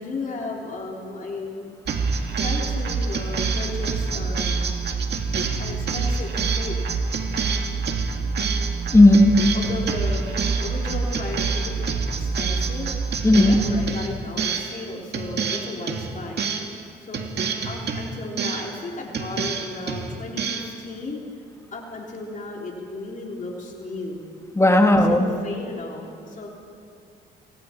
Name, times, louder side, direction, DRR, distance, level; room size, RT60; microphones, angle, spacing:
voice 1, 0.0-1.7 2.4-4.8 5.6-6.8 9.5-10.2 10.5-11.9 12.2-12.9 13.3-16.7 17.0-17.2 17.6-21.2 21.7-24.2 24.7-26.5, left 3 dB, 40° left, -1 dB, 3.6 m, -34 dB
sound 1, 1.9-14.8 15.1-16.8 17.1-18.8 19.1-20.7, right 4 dB, 55° right, 2.2 m, -26 dB
voice 2, 8.9-9.4 13.2-13.6 24.6-25.3, left 1 dB, 15° left, 3 dB, 2.1 m, -14 dB
27.5 x 25.0 x 4.5 m, 2.4 s
cardioid pair, 90°, 20 cm